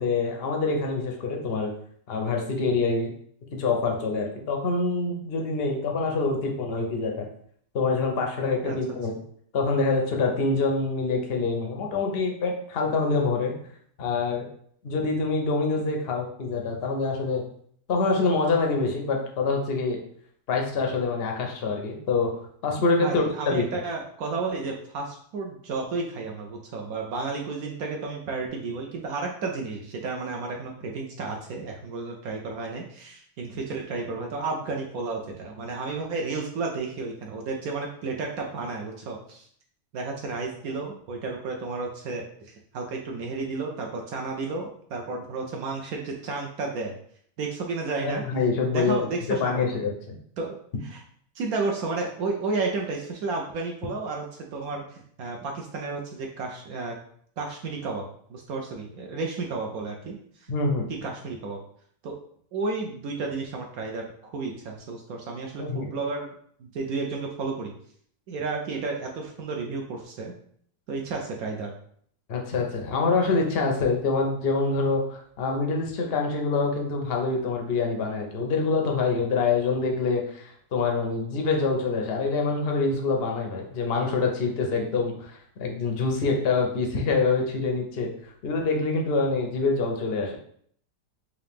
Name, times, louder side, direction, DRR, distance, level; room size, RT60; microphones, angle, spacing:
voice 1, 0.0-1.7 2.1-3.1 3.5-7.3 7.7-9.1 9.5-13.5 14.0-14.5 14.8-17.4 17.9-20.0 20.5-22.3 22.6-23.6 48.0-49.1 49.4-50.2 60.5-60.9 65.6-65.9 72.3-90.4, left 4 dB, 65° left, 1 dB, 0.6 m, -25 dB
voice 2, 23.0-39.5 39.9-46.9 47.4-48.2 48.7-49.6 50.4-50.6 50.8-51.0 51.4-57.0 57.4-58.0 58.3-60.5 61.0-61.6 62.0-62.1 62.5-64.1 64.3-66.3 66.6-67.7 68.3-70.3 70.9-71.7, right 3 dB, 70° right, 1 dB, 0.9 m, -32 dB
3.8 x 2.9 x 3.4 m, 0.62 s
omnidirectional pair, 1.9 m